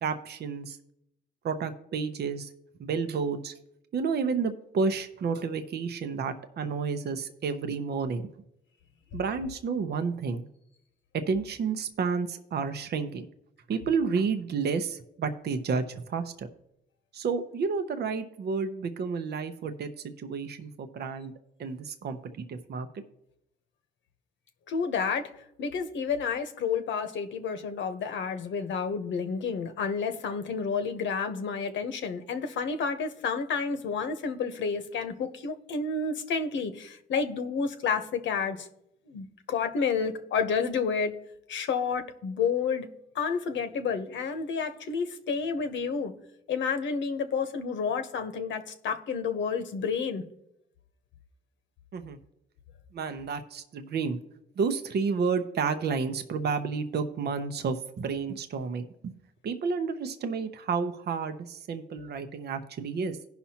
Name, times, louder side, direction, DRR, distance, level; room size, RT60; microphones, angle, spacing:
voice 1, 0.0-0.8 1.4-2.5 2.8-3.5 3.9-8.3 9.1-10.5 11.1-13.2 13.7-16.5 17.1-21.3 21.6-23.0 51.9-52.2 52.9-54.2 54.6-59.1 59.4-63.2, right 5 dB, 55° right, 9 dB, 0.8 m, -31 dB
voice 2, 24.7-25.3 25.6-38.7 39.1-41.2 41.5-46.1 46.5-50.2, left 5 dB, 70° left, 8 dB, 1.0 m, -30 dB
17.0 x 5.7 x 2.9 m, 0.79 s
cardioid pair, 90°, 20 cm